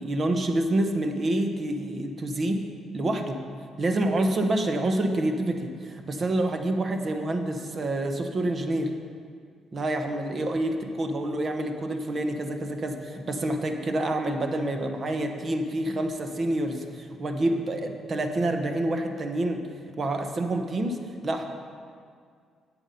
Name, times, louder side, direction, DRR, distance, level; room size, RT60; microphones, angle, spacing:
voice 1, 0.0-2.6 2.9-3.4 3.8-8.9 9.7-19.7 20.0-21.4, right 1 dB, 40° right, 5 dB, 1.0 m, -27 dB
9.7 x 7.9 x 5.4 m, 2.1 s
cardioid pair, 90°, 0 cm